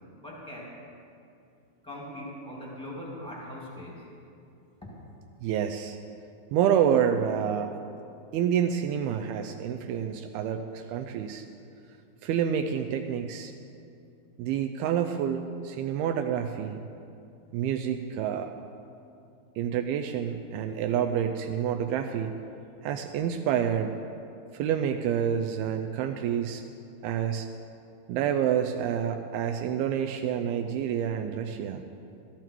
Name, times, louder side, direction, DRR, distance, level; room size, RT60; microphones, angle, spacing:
voice 1, 0.1-0.8 1.8-4.1 4.8-4.9, left 1 dB, ahead, -4 dB, 1.2 m, -41 dB
voice 2, 5.4-6.0 6.5-7.7 8.3-11.4 12.2-13.5 14.4-16.8 17.5-18.5 19.6-22.4 22.8-24.0 24.5-26.6 27.0-27.5 28.1-31.8, right 8 dB, 80° right, 6 dB, 2.3 m, -28 dB
15.0 x 13.5 x 4.6 m, 2.5 s
omnidirectional pair, 4.8 m